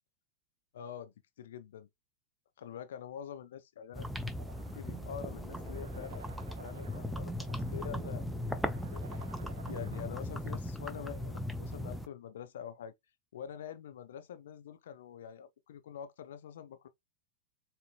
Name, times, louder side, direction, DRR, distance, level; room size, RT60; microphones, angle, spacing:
voice 1, 0.7-1.9 2.6-4.1 4.6-6.3 6.6-8.3 8.6-12.9 13.3-16.9, left 9 dB, 60° left, 0.6 m, -46 dB
sound 1, 3.9-12.1, left 1 dB, ahead, 0.5 m, -38 dB
sound 2, 4.4-10.4, right 7 dB, 65° right, 0.5 m, -54 dB
6.5 x 2.9 x 2.2 m
figure-of-eight pair, 90°, 0 cm